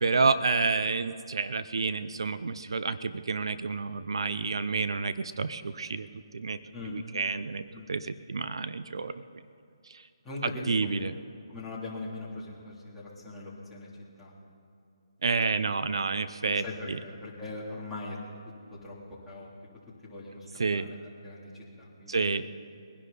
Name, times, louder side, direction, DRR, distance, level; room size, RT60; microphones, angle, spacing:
voice 1, 0.0-6.1 6.3-6.6 6.9-7.6 7.9-9.1 9.9-10.0 10.7-11.1 15.2-17.0 20.6-20.9 22.1-22.4, right 4 dB, 70° right, 13 dB, 0.6 m, -29 dB
voice 2, 10.2-11.2 11.5-13.9 14.2-14.3 16.6-18.2 18.8-19.0 19.3-19.5 20.0-20.5 20.7-22.4, left 2 dB, 5° left, -8 dB, 3.2 m, -41 dB
22.0 x 11.0 x 4.1 m, 2.7 s
hypercardioid pair, 155°, 3 cm